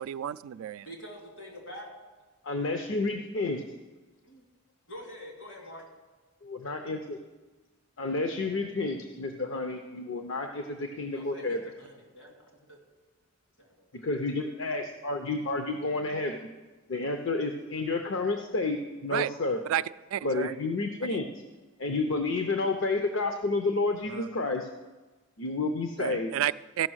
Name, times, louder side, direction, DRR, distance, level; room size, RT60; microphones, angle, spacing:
voice 1, 0.0-0.9 19.1-19.3 19.7-19.8 20.1-20.5 21.1-21.2 24.1-24.3 26.0-26.9, right 11 dB, 85° right, 16 dB, 0.3 m, -31 dB
voice 2, 0.8-1.9 4.2-4.4 4.9-5.8 11.1-12.3 12.7-12.8 13.6-13.9, equal, 80° left, 0 dB, 2.8 m, -45 dB
voice 3, 2.4-3.6 6.4-7.2 8.0-11.6 13.9-16.5 16.9-19.6 20.2-21.3 21.8-24.7 25.4-26.3, left 3 dB, 65° left, 5 dB, 0.7 m, -30 dB
13.5 x 5.7 x 6.3 m, 1.3 s
head